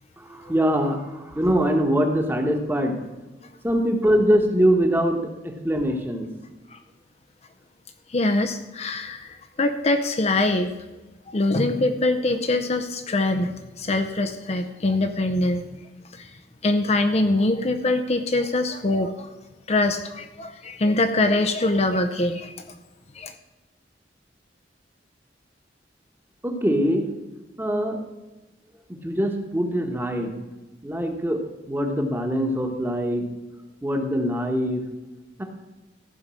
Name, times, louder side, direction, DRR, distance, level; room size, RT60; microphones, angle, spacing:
voice 1, 0.2-3.0 3.6-5.2 5.4-6.3 26.4-27.0 27.6-28.0 28.9-30.3 30.8-31.4 31.7-33.2 33.8-34.8 35.4-35.5, equal, 10° right, 3 dB, 1.2 m, -23 dB
voice 2, 8.1-10.7 11.3-15.7 16.1-16.3 16.6-19.3 19.7-22.5 23.1-23.3, left 2 dB, 35° left, 7 dB, 0.5 m, -23 dB
14.5 x 5.3 x 6.3 m, 1.1 s
head